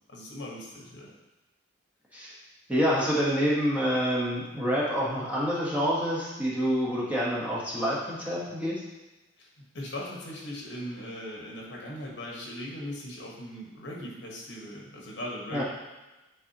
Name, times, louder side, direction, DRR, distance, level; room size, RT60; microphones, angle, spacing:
voice 1, 0.1-1.1 9.4-9.5 9.7-15.6, left 1 dB, 60° left, -2 dB, 1.3 m, -39 dB
voice 2, 2.7-8.8 15.5-15.6, equal, 10° right, -7 dB, 1.2 m, -27 dB
8.5 x 4.0 x 2.9 m, 1.1 s
head